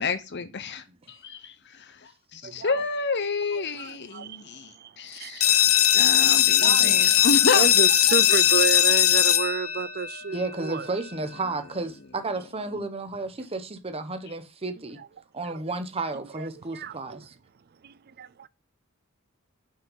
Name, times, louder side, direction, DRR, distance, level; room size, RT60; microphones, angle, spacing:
voice 1, 0.0-5.5 5.9-7.7 12.7-12.9, left 4 dB, 55° left, 1.0 m, -30 dB
voice 2, 2.4-2.7 3.8-4.4 4.8-4.9 5.2-5.5 6.6-7.3 7.5-10.9 15.5-15.6 16.3-17.2 17.8-18.5, right 6 dB, 50° right, 0.4 m, -31 dB
sound 1, 5.4-10.8, left 11 dB, 90° left, 0.7 m, -20 dB
voice 3, 10.3-15.0 15.3-17.3, right 3 dB, 30° right, 1.0 m, -32 dB
6.8 x 5.5 x 5.5 m
head